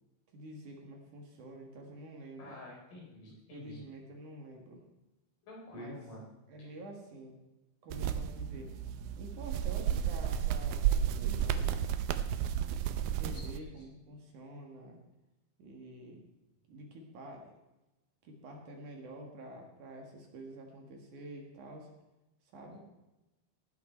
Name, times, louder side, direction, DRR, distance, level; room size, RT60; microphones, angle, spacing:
voice 1, 0.3-2.6 3.3-4.8 5.7-6.0 6.5-7.4 7.8-8.7 9.2-11.9 13.0-15.0 15.6-16.2 16.7-17.5 18.2-21.9 22.5-22.8, right 1 dB, 60° right, 2 dB, 3.0 m, -48 dB
voice 2, 2.4-3.8 5.4-6.3 6.6-6.7 13.2-13.4 13.7-13.8, left 1 dB, 60° left, -3 dB, 5.5 m, -49 dB
sound 1, 7.9-13.6, right 9 dB, 80° right, 2.5 m, -32 dB
18.5 x 9.3 x 4.4 m, 0.97 s
omnidirectional pair, 4.3 m